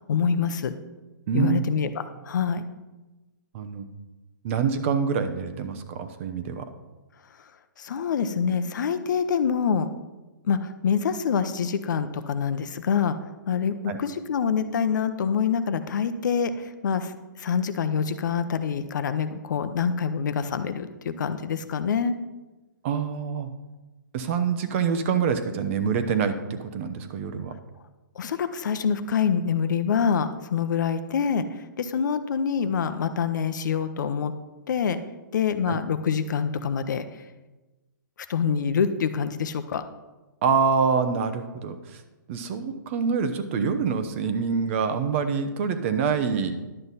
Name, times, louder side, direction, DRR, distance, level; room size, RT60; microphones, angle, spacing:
voice 1, 0.1-0.7 1.3-1.9 2.3-2.6 7.8-9.9 10.4-13.2 13.5-17.1 17.4-22.1 28.2-34.3 34.7-35.0 35.3-37.0 38.3-39.8, left 6 dB, 60° left, 10 dB, 0.8 m, -26 dB
voice 2, 1.3-1.6 3.5-3.9 4.4-6.6 13.9-14.0 22.8-23.5 24.1-27.5 35.7-35.8 40.4-42.0 42.3-46.5, right 6 dB, 35° right, 9 dB, 0.8 m, -26 dB
11.0 x 7.8 x 4.1 m, 1.1 s
hypercardioid pair, 150°, 11 cm